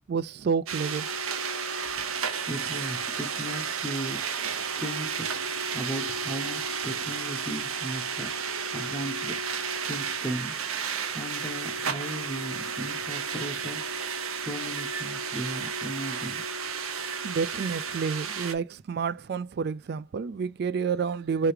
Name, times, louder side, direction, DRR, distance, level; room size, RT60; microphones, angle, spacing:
voice 1, 0.1-1.1 4.5-4.7 17.2-21.5, right 5 dB, 50° right, 0.3 m, -29 dB
sound 1, 0.7-18.5, right 6 dB, 85° right, 0.8 m, -32 dB
voice 2, 1.9-10.8 11.1-14.0 14.4-16.5, right 1 dB, 5° left, 0.7 m, -37 dB
3.4 x 3.2 x 4.8 m
head